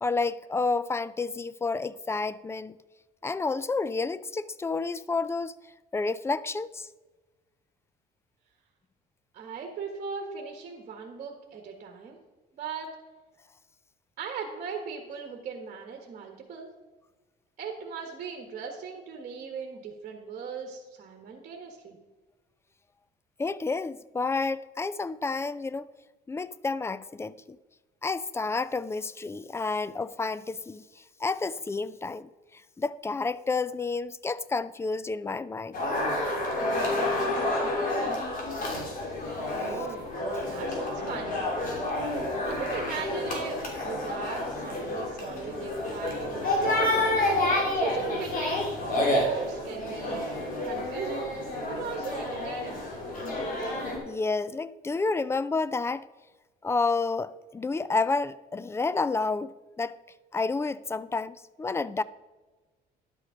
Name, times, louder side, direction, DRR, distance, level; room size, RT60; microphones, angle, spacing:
voice 1, 0.0-2.8 3.2-5.6 5.9-6.9 23.4-25.8 26.3-27.6 28.0-35.8 54.1-56.1 56.6-60.0 60.3-62.0, left 3 dB, 15° left, 0.4 m, -30 dB
voice 2, 9.3-12.2 12.5-12.9 14.2-16.7 17.6-22.0 39.6-40.0 40.5-41.8 42.5-47.3 47.7-50.2 50.6-51.3 51.7-52.8, right 6 dB, 50° right, 1.6 m, -38 dB
sound 1, 35.7-54.0, left 1 dB, 55° left, 3.2 m, -29 dB
11.0 x 6.5 x 5.1 m
cardioid pair, 110°, 17 cm